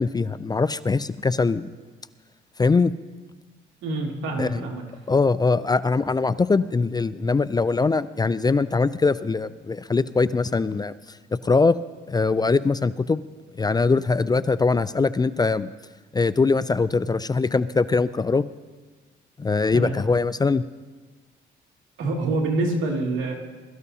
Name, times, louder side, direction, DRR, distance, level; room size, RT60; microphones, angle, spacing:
voice 1, 0.0-1.7 2.6-2.9 4.4-4.7 5.1-11.2 11.4-11.8 12.1-13.2 13.6-15.7 16.1-18.4 19.4-20.6, left 4 dB, 20° left, 15 dB, 0.4 m, -22 dB
voice 2, 3.8-4.8 19.7-20.0 22.0-23.3, right 2 dB, 80° right, -1 dB, 2.4 m, -26 dB
21.5 x 13.5 x 2.8 m, 1.3 s
cardioid pair, 90°, 20 cm